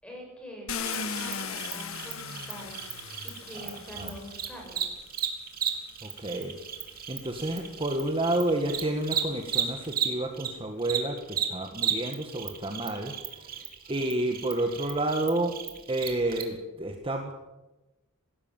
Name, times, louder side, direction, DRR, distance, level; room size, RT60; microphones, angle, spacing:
voice 1, 0.0-2.9 3.2-4.8, equal, 5° left, -1 dB, 7.9 m, -44 dB
Car, 0.7-4.8 5.7-5.8 6.4-9.7, left 6 dB, 75° left, 1.8 m, -39 dB
Cricket, 0.9-10.5 10.8-16.4, right 9 dB, 45° right, 3.3 m, -34 dB
voice 2, 3.5-4.1 6.0-6.6 7.1-15.6 15.9-17.3, right 1 dB, 25° right, 3 dB, 1.7 m, -30 dB
20.0 x 16.5 x 9.0 m, 1.1 s
head